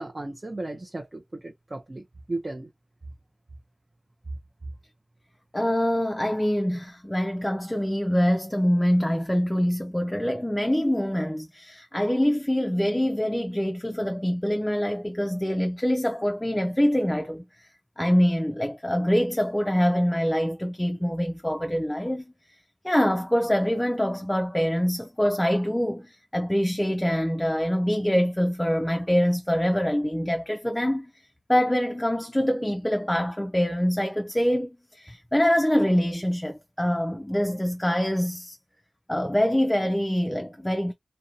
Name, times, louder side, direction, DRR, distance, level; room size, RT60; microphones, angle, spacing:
voice 1, 0.0-2.7, right 2 dB, 40° right, 0.5 m, -35 dB
voice 2, 5.5-17.7 18.0-22.3 22.8-38.6 39.1-40.9, equal, 15° left, 0.4 m, -25 dB
2.5 x 2.1 x 2.7 m
wide cardioid pair, 55°, 0 cm